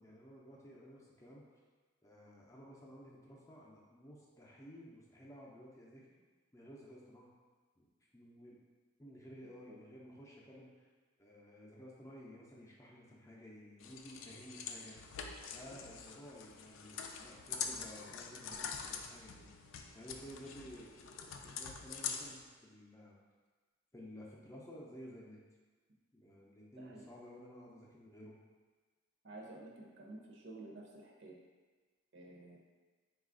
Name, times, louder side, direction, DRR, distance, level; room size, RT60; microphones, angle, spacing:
voice 1, 0.0-1.5 2.0-6.1 6.5-7.3 7.8-7.9 8.1-8.6 9.0-10.9 11.2-15.1 15.5-19.5 19.9-23.2 23.9-25.4 26.1-28.4, equal, 15° left, -4 dB, 0.5 m, -54 dB
sound 1, 13.8-22.4, left 6 dB, 85° left, 0.3 m, -45 dB
voice 2, 29.2-31.4 32.1-32.6, right 2 dB, 60° right, -2 dB, 0.7 m, -51 dB
4.0 x 2.4 x 3.7 m, 1.4 s
head